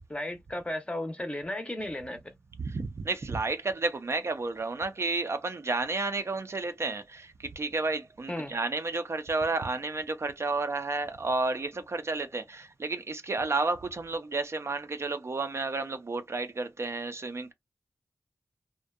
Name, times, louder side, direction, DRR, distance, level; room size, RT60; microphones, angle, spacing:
voice 1, 0.1-2.2 8.3-8.5, left 1 dB, 15° left, 0.6 m, -34 dB
voice 2, 2.6-17.5, right 3 dB, 45° right, 0.4 m, -31 dB
2.6 x 2.1 x 2.3 m
wide cardioid pair, 85°, 6 cm